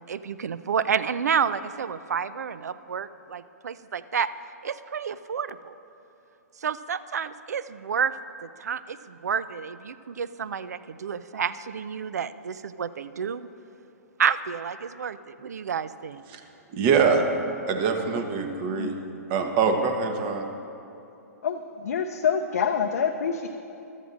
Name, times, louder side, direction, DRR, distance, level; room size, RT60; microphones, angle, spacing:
voice 1, 0.1-4.3 4.6-5.8 6.6-8.1 8.4-13.5 14.2-16.2, right 7 dB, 75° right, 15 dB, 0.4 m, -30 dB
voice 2, 16.7-17.2 17.7-18.9 19.3-20.4, right 5 dB, 35° right, 5 dB, 1.1 m, -23 dB
voice 3, 21.4-23.5, left 7 dB, 70° left, 4 dB, 0.5 m, -26 dB
14.5 x 12.5 x 2.5 m, 2.8 s
hypercardioid pair, 120°, 9 cm